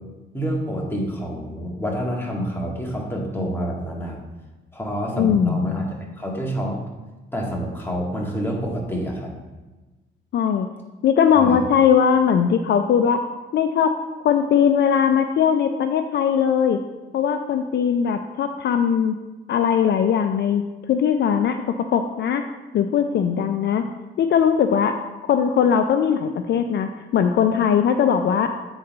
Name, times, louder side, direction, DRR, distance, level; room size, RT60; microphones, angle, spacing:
voice 1, 0.3-4.2 4.7-6.8 7.3-9.3 11.3-11.6, equal, 10° left, -2 dB, 1.9 m, -27 dB
voice 2, 5.2-5.8 10.3-10.7 11.0-13.2 13.5-13.9 14.2-16.8 17.1-19.2 19.5-20.6 20.9-21.6 21.9-22.4 22.7-23.8 24.2-25.0 25.3-28.5, left 7 dB, 60° left, 7 dB, 0.5 m, -19 dB
8.2 x 3.9 x 5.4 m, 1.2 s
cardioid pair, 90°, 20 cm